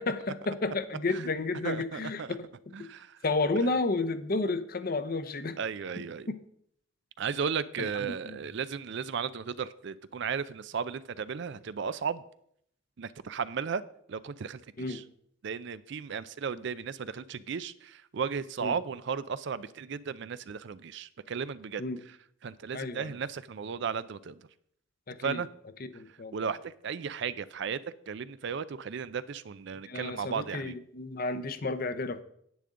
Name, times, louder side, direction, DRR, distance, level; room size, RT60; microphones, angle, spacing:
voice 1, 0.0-2.5 2.8-2.9 3.2-5.6 7.8-8.4 14.8-15.0 18.6-18.7 21.8-22.0 22.7-23.1 25.1-25.4 25.8-26.4 29.9-32.2, left 3 dB, 45° left, 11 dB, 0.7 m, -32 dB
voice 2, 1.6-2.4 2.7-3.2 5.6-6.3 7.2-12.2 13.0-13.8 14.1-15.0 15.4-22.2 22.4-24.3 25.2-25.5 26.3-27.8 28.1-30.8, right 6 dB, 60° right, 16 dB, 0.4 m, -35 dB
10.5 x 9.3 x 3.7 m, 0.69 s
head